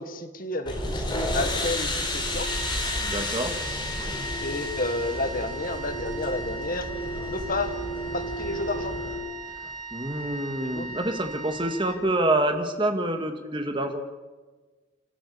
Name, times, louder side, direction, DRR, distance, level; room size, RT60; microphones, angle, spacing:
voice 1, 0.0-2.5 4.4-6.9 7.3-7.8 8.1-9.0 10.6-10.9, left 2 dB, 40° left, 8 dB, 1.8 m, -31 dB
sound 1, 0.7-9.2, left 1 dB, 20° left, 4.9 m, -31 dB
Wind instrument woodwind instrument, 2.4-12.5, right 2 dB, 40° right, 3.6 m, -39 dB
voice 2, 3.0-3.5 9.9-14.0, right 1 dB, 25° right, 6 dB, 1.9 m, -27 dB
27.5 x 13.0 x 8.6 m, 1.3 s
head